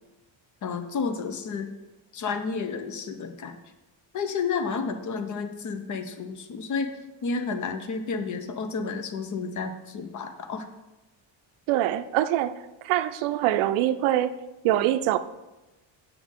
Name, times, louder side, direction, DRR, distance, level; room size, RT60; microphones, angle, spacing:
voice 1, 0.6-1.7 2.1-3.6 4.1-6.9 7.2-10.7, left 5 dB, 40° left, 0.7 m, -31 dB
voice 2, 11.7-14.3 14.6-15.2, right 13 dB, 80° right, 0.6 m, -24 dB
8.0 x 6.2 x 3.7 m
cardioid pair, 140°, 48 cm